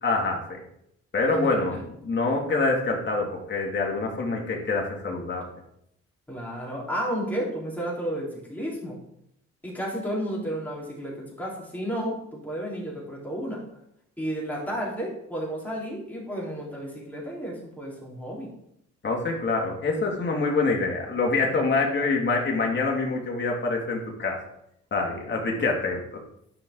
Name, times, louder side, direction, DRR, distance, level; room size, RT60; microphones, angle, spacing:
voice 1, 0.0-0.6 1.1-5.4 19.0-24.4 24.9-26.2, left 3 dB, 40° left, 0 dB, 2.4 m, -26 dB
voice 2, 6.3-9.0 9.6-13.6 14.2-18.5, equal, 5° left, -5 dB, 3.9 m, -32 dB
11.5 x 5.7 x 3.9 m, 0.75 s
cardioid pair, 90°, 30 cm